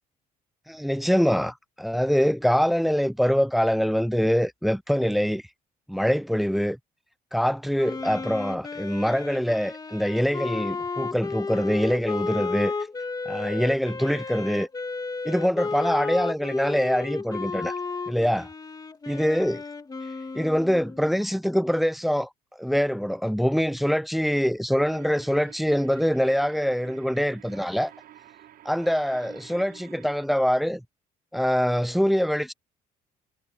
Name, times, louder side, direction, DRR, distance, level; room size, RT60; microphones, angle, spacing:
voice 1, 0.7-5.4 5.9-6.8 7.3-12.7 13.3-14.7 15.2-17.7 18.1-18.5 19.1-19.6 20.3-22.3 22.6-27.9 28.7-30.8 31.3-32.5, equal, ahead, 0.5 m, -24 dB
Wind instrument woodwind instrument, 7.8-21.2, left 4 dB, 20° left, 1.9 m, -33 dB
sound 1, 24.8-30.3, right 12 dB, 65° right, 5.2 m, -49 dB
cardioid pair, 110°, 17 cm